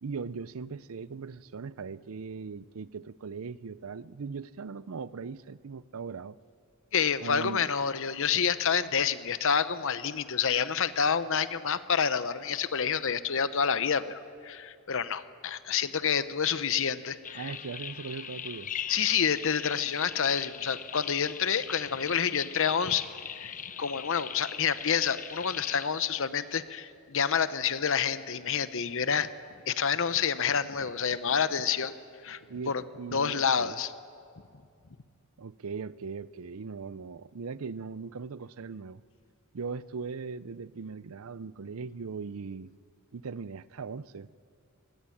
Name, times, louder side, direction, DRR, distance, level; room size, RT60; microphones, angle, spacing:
voice 1, 0.0-6.4 7.2-7.7 17.3-18.7 32.5-33.8 35.4-39.0 39.5-42.7 43.1-44.3, right 5 dB, 70° right, 0.5 m, -39 dB
voice 2, 6.9-17.5 18.9-23.1 23.4-29.3 29.7-31.9 32.2-32.4 32.7-32.8 33.1-33.9, left 7 dB, 65° left, 0.9 m, -28 dB
sound 1, 17.2-25.9, left 8 dB, 40° left, 0.9 m, -41 dB
24.5 x 20.0 x 8.6 m
head